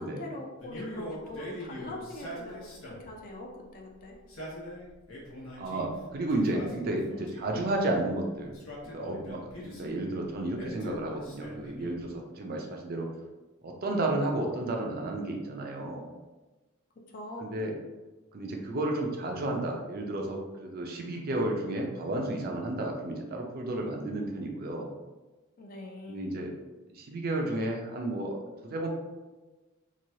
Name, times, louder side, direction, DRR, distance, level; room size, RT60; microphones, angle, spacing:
voice 1, 0.0-4.2 17.1-17.5 25.6-26.3, left 1 dB, 40° left, 1 dB, 0.4 m, -42 dB
Male speech man speaking, 0.6-3.2 4.1-5.9 6.3-7.6 8.4-10.0 10.6-12.1, left 1 dB, 80° left, 0.9 m, -42 dB
voice 2, 5.6-8.5 8.9-13.1 13.6-16.1 17.4-17.7 18.3-24.9 26.1-26.5 26.9-28.4 28.6-28.9, right 1 dB, 45° right, 1 dB, 0.4 m, -32 dB
3.0 x 2.2 x 2.7 m, 1.2 s
head